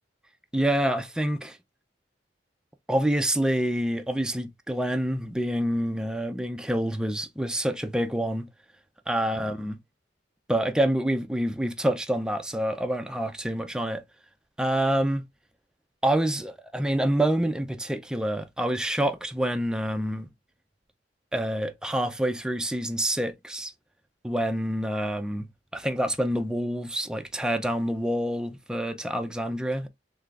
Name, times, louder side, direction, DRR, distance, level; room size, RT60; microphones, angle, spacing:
voice 1, 0.5-1.6 2.9-8.5 9.1-9.8 10.5-14.0 14.6-15.2 16.0-20.3 21.3-23.7 24.2-25.5 25.7-29.9, right 1 dB, 5° right, 0.3 m, -27 dB
3.6 x 3.2 x 2.3 m
head